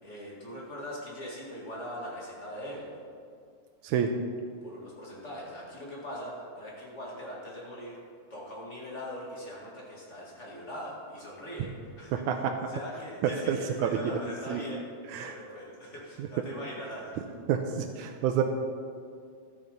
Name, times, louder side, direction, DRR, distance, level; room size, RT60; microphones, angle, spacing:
voice 1, 0.0-2.9 4.6-8.0 8.3-14.9 15.2-17.1, equal, 25° left, -4 dB, 1.9 m, -41 dB
voice 2, 12.1-12.5 13.2-14.0 14.5-14.6 15.1-15.3 17.5-18.4, right 8 dB, 80° right, 4 dB, 1.9 m, -28 dB
12.5 x 7.4 x 5.3 m, 2.2 s
omnidirectional pair, 3.5 m